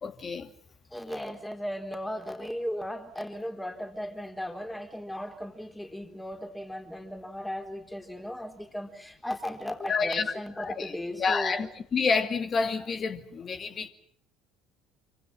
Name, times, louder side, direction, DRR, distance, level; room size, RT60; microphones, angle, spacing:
voice 1, 0.0-0.5 9.9-10.3 10.6-13.9, left 5 dB, 35° left, 2.5 m, -29 dB
voice 2, 0.9-11.6, equal, 5° left, 4.0 m, -36 dB
28.0 x 25.0 x 6.0 m
figure-of-eight pair, 60°, 0 cm